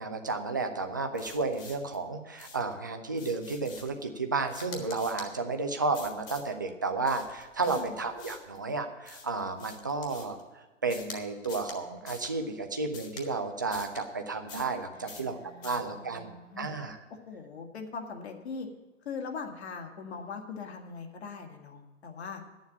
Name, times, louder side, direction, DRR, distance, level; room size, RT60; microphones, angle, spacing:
voice 1, 0.0-10.4 10.8-15.4 15.6-16.3 16.6-17.0, right 3 dB, 20° right, 5 dB, 0.3 m, -32 dB
sound 1, 1.1-2.0 2.4-2.7 3.1-4.0 4.5-5.3 5.9-6.5 7.0-8.6 9.1-10.4 10.9-11.2 11.4-11.8 12.1-12.3 12.9-13.3 13.7-14.0 14.5-14.8 15.1-15.3 15.6-15.9, left 4 dB, 20° left, 1.5 m, -46 dB
voice 2, 14.9-16.7 17.3-18.7 19.0-22.4, left 5 dB, 55° left, 3 dB, 1.9 m, -41 dB
10.0 x 7.3 x 8.4 m, 1.2 s
figure-of-eight pair, 130°, 38 cm